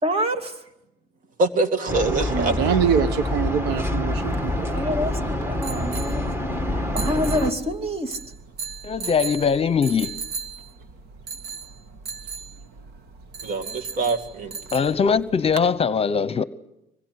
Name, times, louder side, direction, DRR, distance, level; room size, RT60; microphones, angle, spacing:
voice 1, 0.0-0.6 4.7-6.2 6.7-8.2, equal, 35° right, 2.9 m, -27 dB
voice 2, 1.4-2.8 13.4-14.6, right 3 dB, 50° right, 2.5 m, -24 dB
sound 1, 1.9-7.5, left 1 dB, 15° right, 2.4 m, -26 dB
voice 3, 2.3-4.7, right 8 dB, 85° right, 1.1 m, -24 dB
sound 2, 4.1-15.7, right 5 dB, 70° right, 2.2 m, -37 dB
voice 4, 8.8-10.1 14.7-16.4, left 6 dB, 35° left, 0.9 m, -21 dB
25.5 x 22.0 x 9.7 m
cardioid pair, 110°, 17 cm